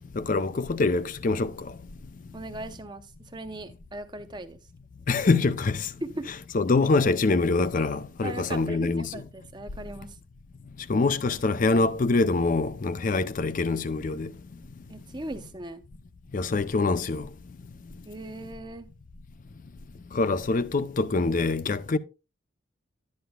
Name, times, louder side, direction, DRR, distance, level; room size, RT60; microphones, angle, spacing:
voice 1, 0.2-1.5 5.1-5.9 6.5-9.1 10.9-14.3 16.3-17.2 20.1-22.0, left 3 dB, 40° left, 0.4 m, -24 dB
voice 2, 2.3-4.6 6.0-6.3 8.2-10.2 14.9-15.8 18.1-18.9, right 2 dB, 20° right, 0.6 m, -38 dB
11.5 x 9.5 x 2.2 m
head